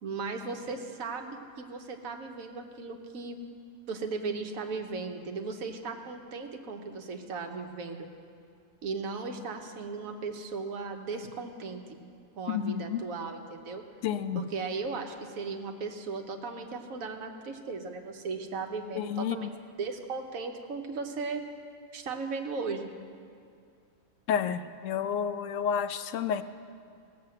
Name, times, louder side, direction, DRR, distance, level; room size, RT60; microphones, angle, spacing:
voice 1, 0.0-3.4 3.9-8.1 8.8-12.0 12.4-13.8 14.3-19.5 19.8-21.4 21.9-22.9, right 4 dB, 70° right, 4 dB, 1.4 m, -37 dB
voice 2, 12.5-13.0 14.0-14.4 19.0-19.5 24.3-26.4, left 8 dB, 70° left, 11 dB, 0.9 m, -30 dB
17.0 x 6.6 x 7.7 m, 2.3 s
omnidirectional pair, 1.5 m